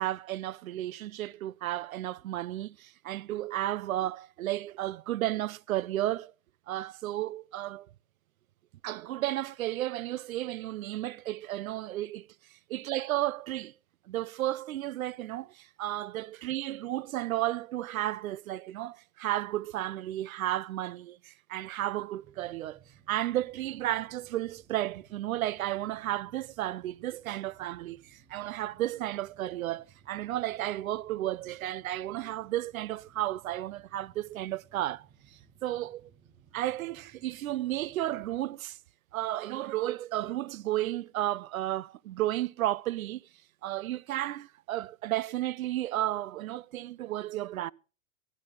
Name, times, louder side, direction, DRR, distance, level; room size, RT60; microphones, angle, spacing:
voice 1, 0.0-6.3 6.7-7.9 8.8-12.3 12.7-13.7 14.1-22.8 23.1-35.0 35.6-36.1 36.5-38.8 39.1-43.2 43.6-47.7, right 14 dB, 90° right, 0.5 m, -33 dB
sound 1, 22.2-38.4, right 7 dB, 30° right, 2.0 m, -61 dB
14.0 x 12.5 x 3.8 m
hypercardioid pair, 120°, 40 cm